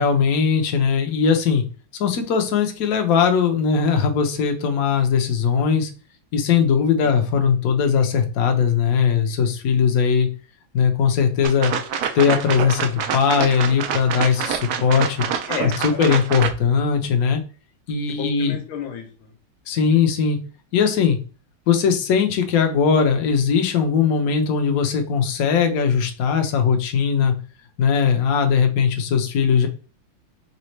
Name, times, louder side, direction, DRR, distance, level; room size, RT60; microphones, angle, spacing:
voice 1, 0.0-1.6 2.0-5.9 6.3-10.3 10.7-11.7 12.1-15.3 15.8-17.4 17.9-18.6 19.7-20.4 20.7-21.2 21.7-27.3 27.8-29.7, left 6 dB, 60° left, 6 dB, 1.0 m, -19 dB
sound 1, 11.4-16.5, right 8 dB, 75° right, 0.9 m, -26 dB
voice 2, 15.5-16.0 18.1-19.3 19.7-20.0, left 8 dB, 80° left, 2 dB, 1.9 m, -33 dB
4.1 x 3.6 x 3.2 m, 0.37 s
omnidirectional pair, 2.2 m